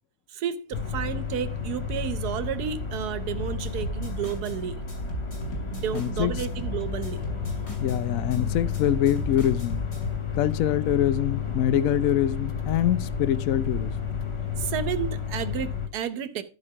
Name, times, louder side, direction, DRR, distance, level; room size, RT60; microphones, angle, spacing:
voice 1, 0.3-4.8 5.7-7.2 14.6-16.4, right 9 dB, 75° right, 1.4 m, -31 dB
sound 1, 0.7-15.9, left 6 dB, 25° left, 0.8 m, -31 dB
sound 2, 3.4-4.6 4.9-8.0 8.3-10.2, right 1 dB, 40° left, 2.9 m, -38 dB
voice 2, 5.9-6.5 7.8-9.8 10.3-13.9, left 11 dB, 65° left, 0.9 m, -25 dB
12.0 x 5.1 x 4.8 m
omnidirectional pair, 1.7 m